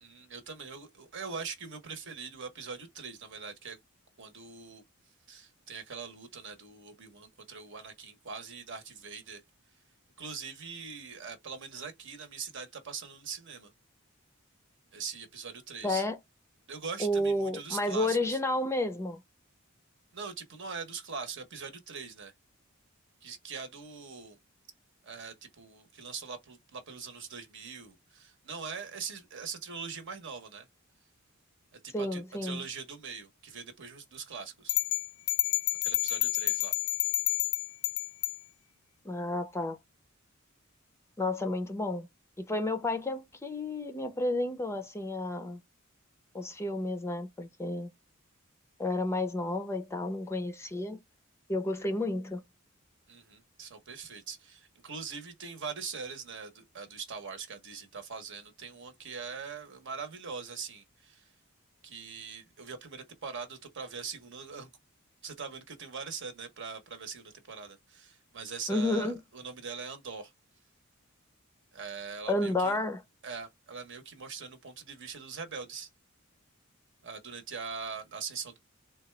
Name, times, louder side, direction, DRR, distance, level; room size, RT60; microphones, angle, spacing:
voice 1, 0.0-3.8 4.2-4.8 5.3-9.4 10.2-13.7 14.9-16.1 16.7-18.4 20.1-22.3 23.2-24.4 25.0-30.7 31.7-34.8 35.8-36.8 53.1-61.3 61.8-64.7 65.2-70.3 71.7-72.8 73.2-75.9 77.0-78.6, right 5 dB, 60° right, 1.0 m, -42 dB
voice 2, 15.8-16.2 17.0-19.2 31.9-32.6 39.0-39.8 41.2-42.1 42.4-45.6 46.3-47.9 48.8-51.0 51.5-52.4 68.7-69.2 72.3-73.0, left 1 dB, 15° left, 0.5 m, -31 dB
sound 1, 34.7-38.4, left 16 dB, 85° left, 0.3 m, -29 dB
3.8 x 2.3 x 3.2 m
head